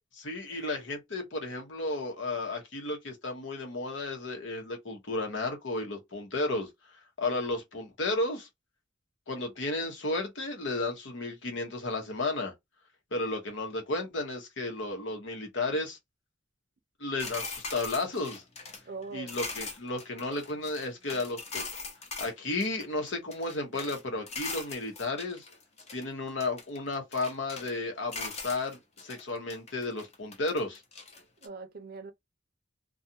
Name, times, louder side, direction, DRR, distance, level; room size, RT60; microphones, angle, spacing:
voice 1, 0.2-6.7 7.2-8.5 9.3-12.5 13.1-16.0 17.0-18.4 19.1-21.6 22.2-25.5 25.9-30.8, left 2 dB, 80° left, 1.0 m, -33 dB
sound 1, 17.2-22.3 22.6-24.0 24.3-26.1 26.4-27.8 28.1-29.2 29.5-31.5, left 4 dB, 35° left, 0.7 m, -41 dB
voice 2, 18.9-19.3 31.4-32.1, right 4 dB, 55° right, 0.5 m, -42 dB
2.5 x 2.3 x 2.7 m
head